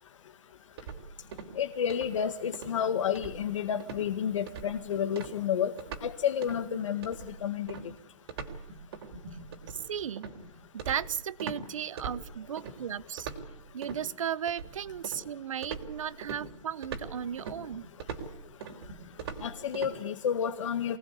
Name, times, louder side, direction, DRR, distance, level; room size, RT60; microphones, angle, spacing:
sound 1, 0.8-1.6 1.9-2.2 2.5-2.8 3.2-3.6 3.8-4.1 4.5-4.8 5.2-6.1 6.4-6.6 7.0-11.6 12.0-12.8 13.2-14.0 14.5-15.3 15.6-19.9, right 5 dB, 55° right, 3.7 m, -41 dB
voice 1, 1.6-5.7 6.0-7.8 19.4-21.0, left 8 dB, 75° left, 6 dB, 1.8 m, -30 dB
voice 2, 9.7-10.3 10.7-13.3 13.7-17.9, right 9 dB, 85° right, 20 dB, 1.0 m, -35 dB
25.5 x 19.5 x 8.4 m, 0.84 s
hypercardioid pair, 165°, 16 cm